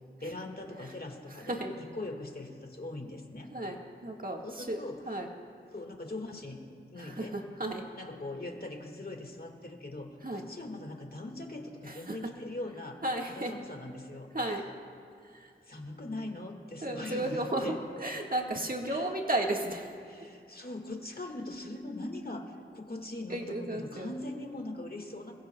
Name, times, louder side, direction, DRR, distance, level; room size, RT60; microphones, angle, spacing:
voice 1, 0.2-3.5 4.4-5.0 5.7-6.6 6.9-7.4 7.9-14.3 15.7-17.8 18.9-19.1 20.0-25.3, left 2 dB, 45° left, 3 dB, 1.7 m, -41 dB
voice 2, 4.0-5.3 7.0-7.8 10.2-10.4 12.1-12.2 13.0-13.5 14.3-14.6 15.4-15.5 16.8-19.9 23.3-24.1, right 1 dB, 45° right, 1 dB, 1.6 m, -33 dB
25.5 x 21.5 x 2.2 m, 2.4 s
wide cardioid pair, 50°, 21 cm